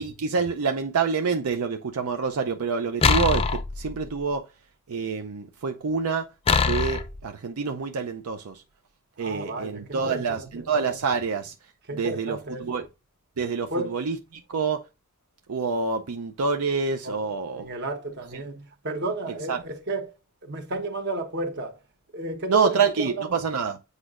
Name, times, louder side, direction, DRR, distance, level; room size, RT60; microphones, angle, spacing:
voice 1, 0.0-4.5 4.9-8.6 9.2-11.5 11.9-12.9 13.4-14.8 15.5-17.7 19.5-19.6 22.5-23.8, right 5 dB, 75° right, 0.5 m, -27 dB
sound 1, 3.0-4.2 6.5-7.2, left 5 dB, 25° left, 0.5 m, -23 dB
voice 2, 9.2-10.5 11.9-12.8 13.7-13.9 17.0-20.1 20.4-21.8 22.1-23.3, right 2 dB, 50° right, 1.2 m, -33 dB
8.2 x 4.9 x 2.5 m
head